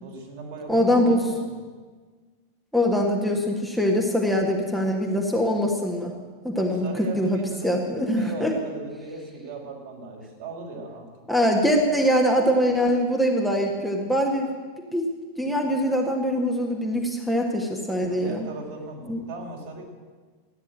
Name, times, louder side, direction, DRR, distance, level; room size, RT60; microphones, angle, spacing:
voice 1, 0.0-1.5 6.5-11.1 18.1-19.8, right 3 dB, 50° right, 0 dB, 3.7 m, -38 dB
voice 2, 0.7-1.2 2.7-6.1 6.4-7.4 7.6-8.5 11.3-14.5 14.9-15.1 15.4-18.5 19.1-19.2, equal, ahead, -1 dB, 1.7 m, -23 dB
14.0 x 9.9 x 8.9 m, 1.5 s
figure-of-eight pair, 90°, 0 cm